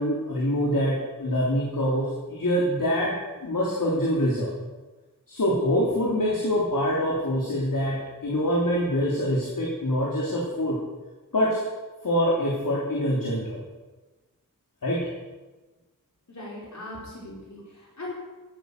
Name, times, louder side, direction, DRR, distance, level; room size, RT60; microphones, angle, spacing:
voice 1, 0.0-4.5 5.3-10.8 11.3-11.6 12.0-13.6 14.8-15.1, equal, 75° left, -4 dB, 3.2 m, -25 dB
voice 2, 16.3-18.1, left 2 dB, 55° left, -5 dB, 4.5 m, -39 dB
16.5 x 9.4 x 6.7 m, 1.2 s
wide cardioid pair, 65°, 33 cm